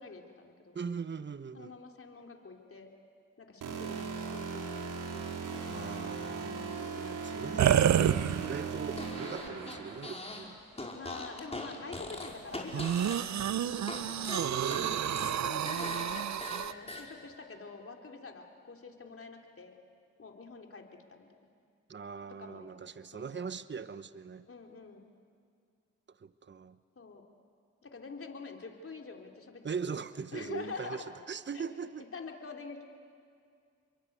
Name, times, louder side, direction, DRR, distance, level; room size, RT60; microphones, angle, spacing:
voice 1, 0.0-0.8 1.5-2.9 3.4-5.6 10.9-14.4 15.0-19.8 20.2-21.3 22.4-22.8 23.1-23.5 24.5-25.0 27.0-27.2 27.8-29.6 30.3-31.1 31.5-31.7 32.0-32.8, left 4 dB, 45° left, 2 dB, 3.8 m, -46 dB
voice 2, 0.7-1.7 5.7-8.1 8.4-10.6 14.4-15.3 21.9-24.5 26.2-26.8 29.6-32.1, right 6 dB, 35° right, 13 dB, 1.0 m, -40 dB
sound 1, 3.6-10.1, right 5 dB, 80° right, 3.7 m, -38 dB
sound 2, 7.6-8.8 9.5-9.6 12.7-16.7, right 10 dB, 60° right, 0.7 m, -29 dB
Fart, 8.9-10.5 10.7-14.0 14.2-17.0, left 2 dB, 20° left, 5.5 m, -42 dB
30.0 x 23.0 x 8.3 m, 2.3 s
supercardioid pair, 50°, 31 cm